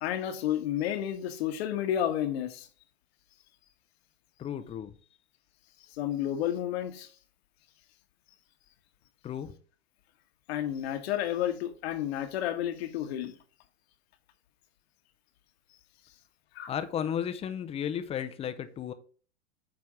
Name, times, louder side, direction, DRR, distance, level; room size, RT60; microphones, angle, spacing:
voice 1, 0.0-2.7 6.0-7.1 10.5-13.3 16.5-16.7, left 11 dB, 60° left, 1.3 m, -31 dB
voice 2, 4.4-4.9 9.2-9.5 16.7-18.9, left 9 dB, 15° left, 0.6 m, -34 dB
8.9 x 3.5 x 4.8 m
hypercardioid pair, 120°, 36 cm